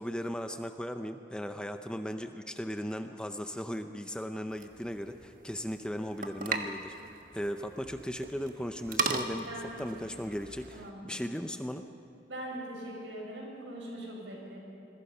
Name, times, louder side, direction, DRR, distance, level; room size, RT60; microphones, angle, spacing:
voice 1, 0.0-6.9 7.3-11.9, equal, 5° left, 7 dB, 0.6 m, -37 dB
sound 1, 4.5-10.9, right 4 dB, 50° right, 1.3 m, -38 dB
voice 2, 9.5-9.8 10.7-11.0 12.3-14.6, right 1 dB, 80° right, -2 dB, 7.0 m, -41 dB
27.0 x 22.0 x 5.6 m, 2.8 s
head